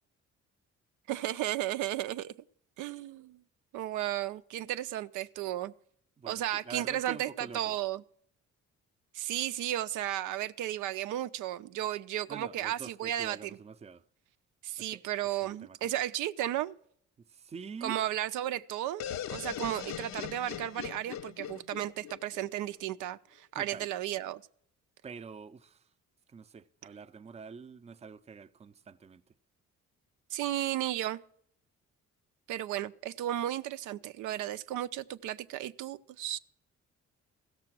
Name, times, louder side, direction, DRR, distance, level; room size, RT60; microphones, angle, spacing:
voice 1, 1.1-2.3 2.8-3.4 3.7-5.7 6.3-8.0 9.1-13.6 14.6-16.8 17.8-24.4 30.3-31.2 32.5-36.4, right 13 dB, 85° right, 0.5 m, -34 dB
voice 2, 6.2-7.8 12.3-14.0 14.8-15.0 15.4-15.9 17.2-18.2 23.5-23.9 25.0-25.9 26.3-29.2, right 5 dB, 20° right, 0.5 m, -46 dB
sound 1, 19.0-22.8, left 10 dB, 65° left, 0.5 m, -40 dB
15.0 x 6.7 x 6.0 m
cardioid pair, 90°, 30 cm